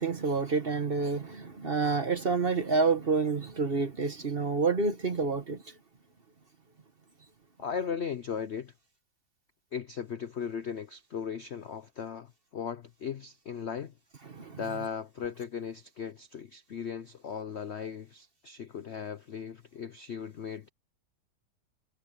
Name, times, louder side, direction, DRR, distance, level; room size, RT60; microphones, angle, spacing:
voice 1, 0.0-5.7 14.3-14.6, right 4 dB, 35° right, 1.2 m, -28 dB
voice 2, 7.6-8.7 9.7-13.9 14.6-20.7, left 7 dB, 60° left, 0.7 m, -37 dB
omnidirectional pair, 2.0 m